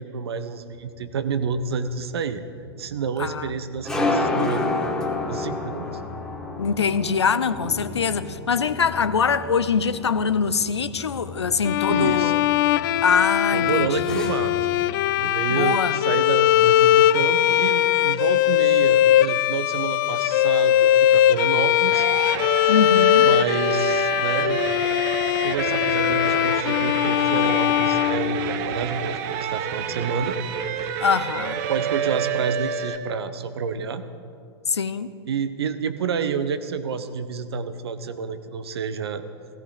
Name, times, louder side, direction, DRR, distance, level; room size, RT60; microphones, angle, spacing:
voice 1, 0.0-2.4 2.8-4.7 5.3-5.9 11.9-12.3 13.5-14.5 15.2-22.1 23.2-24.6 25.4-30.4 31.7-34.0 35.3-39.2, right 6 dB, 65° right, 1.2 m, -29 dB
sound 1, 0.9-14.9, left 2 dB, 5° left, 2.3 m, -31 dB
voice 2, 3.2-3.5 6.6-12.4 13.0-14.2 15.5-16.0 22.7-23.2 31.0-31.6 34.7-35.1, left 6 dB, 80° left, 0.7 m, -23 dB
Bowed string instrument, 11.6-28.9, left 12 dB, 50° left, 0.5 m, -20 dB
sound 2, 21.9-33.0, right 8 dB, 45° right, 1.1 m, -29 dB
17.0 x 16.0 x 5.1 m
figure-of-eight pair, 100°, 14 cm